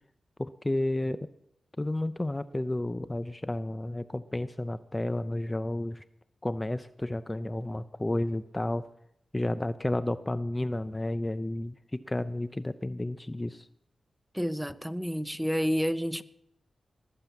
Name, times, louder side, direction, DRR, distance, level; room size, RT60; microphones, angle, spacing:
voice 1, 0.4-1.2 1.8-6.0 6.4-8.9 9.3-11.8 12.0-13.7, left 1 dB, 25° left, 0.6 m, -31 dB
voice 2, 14.3-16.2, equal, 5° right, 1.0 m, -29 dB
20.5 x 7.6 x 7.1 m
cardioid pair, 40°, 0 cm